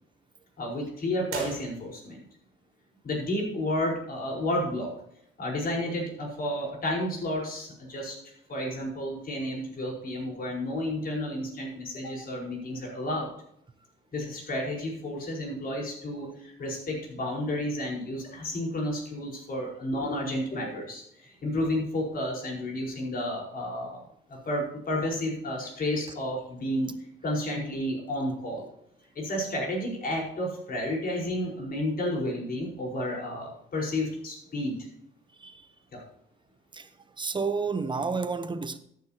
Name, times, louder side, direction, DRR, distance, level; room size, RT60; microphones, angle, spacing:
voice 1, 0.6-2.2 3.0-4.9 5.4-8.2 8.5-13.3 14.1-24.0 24.3-26.9 27.2-28.7 29.1-34.8 35.9-36.0, left 1 dB, 45° left, 4.8 m, -31 dB
sound 1, 1.2-2.3, right 6 dB, 90° right, 3.4 m, -41 dB
voice 2, 36.7-38.8, right 4 dB, 25° right, 0.9 m, -31 dB
13.5 x 9.6 x 2.9 m
cardioid pair, 130°, 21 cm